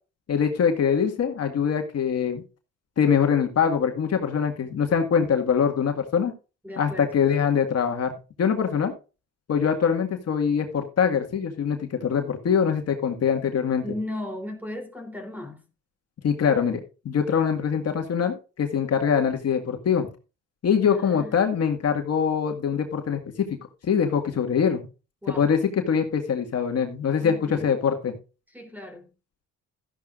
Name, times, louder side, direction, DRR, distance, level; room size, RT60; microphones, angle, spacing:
voice 1, 0.3-2.4 3.0-6.3 6.8-8.1 8.4-8.9 9.5-13.8 16.2-16.8 17.1-20.1 20.6-23.2 23.5-23.6 23.9-24.8 25.3-25.6 25.9-28.1, left 7 dB, 55° left, 2.0 m, -23 dB
voice 2, 6.6-7.0 13.8-15.7 20.8-21.5 25.2-25.5 27.2-27.8 28.5-29.1, left 1 dB, 5° right, 3.6 m, -36 dB
13.5 x 10.5 x 2.6 m
cardioid pair, 90°, 30 cm